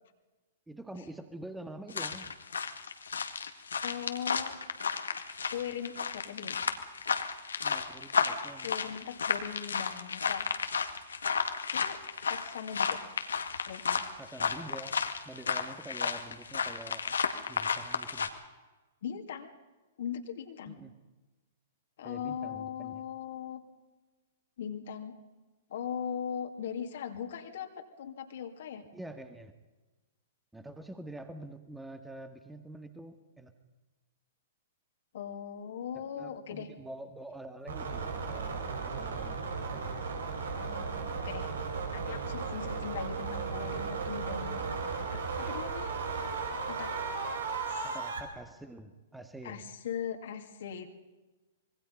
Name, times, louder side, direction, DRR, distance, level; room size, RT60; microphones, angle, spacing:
voice 1, 0.7-2.3 7.6-8.7 14.2-14.9 15.2-17.2 17.5-18.3 20.7-20.9 22.0-23.0 28.9-29.5 30.5-33.5 35.9-40.0 47.8-49.6, right 1 dB, 5° right, 7 dB, 1.8 m, -46 dB
sound 1, 1.9-18.3, left 6 dB, 75° left, 2.0 m, -32 dB
voice 2, 3.8-4.6 4.9-5.0 5.5-6.6 8.6-10.5 11.7-13.0 13.7-14.0 19.0-19.5 20.0-20.8 22.0-23.6 24.6-25.2 25.7-28.8 35.1-36.7 40.5-41.5 41.9-45.9 46.7-46.9 47.7-47.9 49.4-50.9, left 8 dB, 60° left, 4 dB, 2.6 m, -39 dB
sound 2, 37.7-48.2, right 5 dB, 70° right, 4.7 m, -35 dB
26.0 x 22.5 x 5.5 m, 1.2 s
figure-of-eight pair, 110°, 0 cm